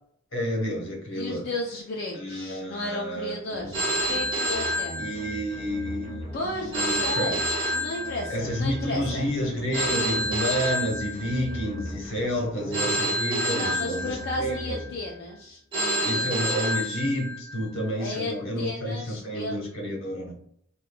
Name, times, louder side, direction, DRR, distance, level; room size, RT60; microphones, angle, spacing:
voice 1, 0.3-1.5 2.1-3.8 5.0-7.4 8.3-14.8 16.0-20.3, equal, 65° left, -1 dB, 1.1 m, -30 dB
voice 2, 1.1-3.8 4.1-5.2 6.3-7.4 7.7-9.3 13.5-16.6 18.0-19.6, left 2 dB, 50° left, -2 dB, 0.4 m, -34 dB
sound 1, 3.6-15.4, equal, 5° right, 1.5 m, -40 dB
Telephone, 3.7-5.6 6.7-8.6 9.7-11.6 12.7-14.6 15.7-17.6, equal, 25° right, 0.8 m, -28 dB
5.1 x 2.3 x 2.3 m, 0.68 s
head